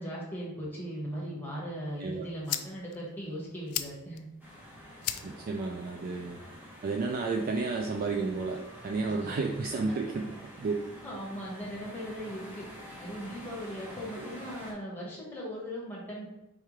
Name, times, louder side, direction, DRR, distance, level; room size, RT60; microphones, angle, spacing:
voice 1, 0.0-4.3 9.0-9.1 11.0-12.7 13.0-16.3, equal, 10° left, -5 dB, 1.5 m, -38 dB
sound 1, 1.9-7.9, left 12 dB, 85° left, 0.3 m, -41 dB
voice 2, 2.0-2.3 5.2-6.4 6.8-10.8 14.2-14.3, right 3 dB, 40° right, 2 dB, 0.3 m, -32 dB
sound 2, 4.4-14.7, equal, 10° right, 1.0 m, -48 dB
4.7 x 3.4 x 3.2 m, 0.98 s
head